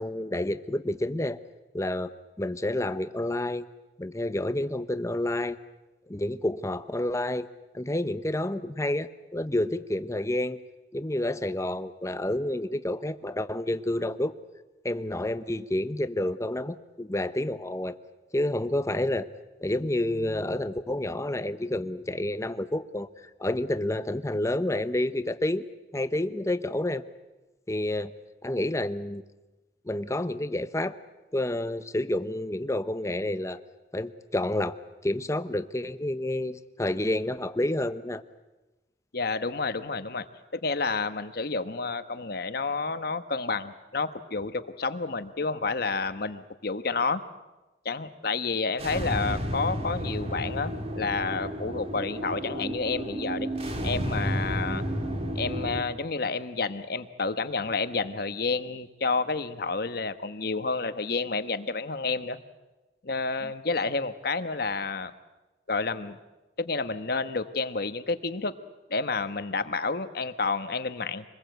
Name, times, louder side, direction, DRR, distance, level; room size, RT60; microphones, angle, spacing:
voice 1, 0.0-1.4 1.7-3.6 4.0-5.6 6.1-7.5 7.7-10.6 10.9-14.3 14.8-18.0 18.3-19.3 19.6-25.6 25.9-27.0 27.7-28.1 28.4-29.2 29.9-31.0 31.3-33.6 33.9-34.8 35.0-38.2 63.4-63.5, left 1 dB, 15° left, 12 dB, 0.8 m, -29 dB
voice 2, 39.1-40.2 40.5-47.2 47.8-53.5 53.8-54.8 55.3-62.4 63.0-65.1 65.7-66.2 66.6-68.5 68.9-71.2, left 4 dB, 60° left, 11 dB, 1.2 m, -30 dB
sound 1, 48.8-55.8, equal, 35° right, 2.3 m, -32 dB
25.0 x 20.5 x 8.0 m, 1.1 s
head